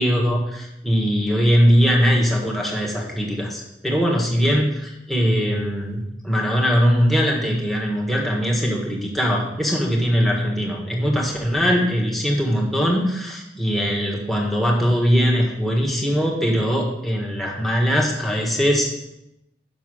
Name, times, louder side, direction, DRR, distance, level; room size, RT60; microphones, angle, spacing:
voice 1, 0.0-18.9, equal, ahead, -1 dB, 1.4 m, -21 dB
6.9 x 5.6 x 6.3 m, 0.85 s
head